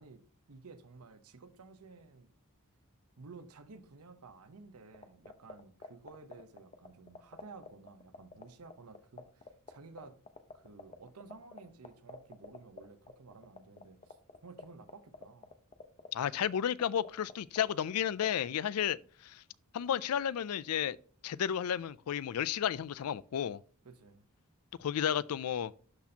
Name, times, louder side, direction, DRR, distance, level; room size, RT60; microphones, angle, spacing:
voice 1, 0.0-2.3 3.2-10.2 10.5-14.2 14.4-15.5 23.8-24.2, right 4 dB, 80° right, 0.9 m, -53 dB
sound 1, 4.9-18.3, left 3 dB, 30° left, 0.7 m, -46 dB
voice 2, 16.1-19.4 19.7-21.0 21.2-23.6 24.8-25.7, left 9 dB, 75° left, 0.4 m, -32 dB
11.5 x 4.3 x 2.8 m
head